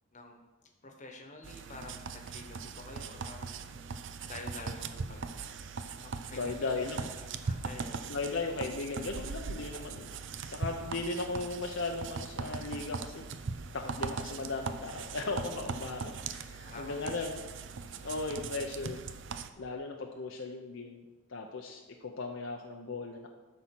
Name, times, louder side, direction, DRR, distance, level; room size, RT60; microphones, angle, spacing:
voice 1, 0.8-3.5 4.3-5.3 6.0-6.7 7.0-8.1 15.8-16.2 16.6-17.4, left 2 dB, 35° left, 3 dB, 1.2 m, -48 dB
sound 1, 1.4-19.5, right 4 dB, 55° right, 0.5 m, -40 dB
voice 2, 6.3-7.0 8.1-10.2 10.5-13.2 13.7-17.4 18.0-19.0 19.6-21.0 21.3-23.3, left 3 dB, 60° left, 2 dB, 0.7 m, -37 dB
12.5 x 4.3 x 6.0 m, 1.2 s
head